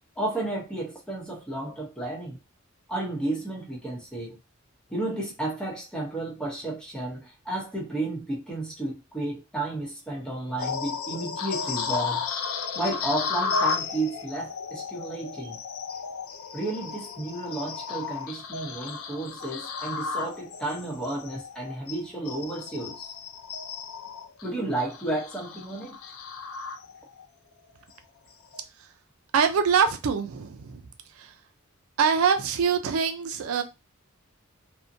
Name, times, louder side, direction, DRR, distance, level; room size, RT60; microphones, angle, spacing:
voice 1, 0.2-2.4 2.9-4.4 4.9-12.2 12.7-15.6 16.5-23.1 24.4-25.9, right 2 dB, 5° left, 0.8 m, -32 dB
sound 1, 10.6-27.2 27.7-27.9 28.4-28.6, left 5 dB, 75° left, 0.4 m, -34 dB
voice 2, 29.3-30.8 31.2-31.3 32.0-33.6, right 6 dB, 80° right, 0.4 m, -24 dB
2.6 x 2.1 x 2.5 m
head